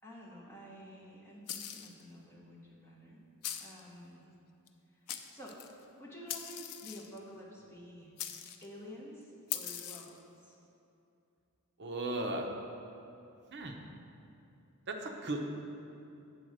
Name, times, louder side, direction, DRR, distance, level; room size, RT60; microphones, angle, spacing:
voice 1, 0.0-3.2 3.6-4.3 4.9-5.0 5.3-5.6 6.0-8.1 8.6-10.6, equal, 10° left, -5 dB, 1.3 m, -50 dB
sound 1, 1.5-2.0 3.4-3.8 4.7-4.8 5.1-5.7 6.3-7.2 8.2-8.7 9.5-10.2, left 10 dB, 85° left, 0.5 m, -41 dB
voice 2, 11.8-12.5 13.5-13.8 14.9-15.5, right 2 dB, 50° right, 2 dB, 0.8 m, -36 dB
8.1 x 4.0 x 6.4 m, 2.7 s
head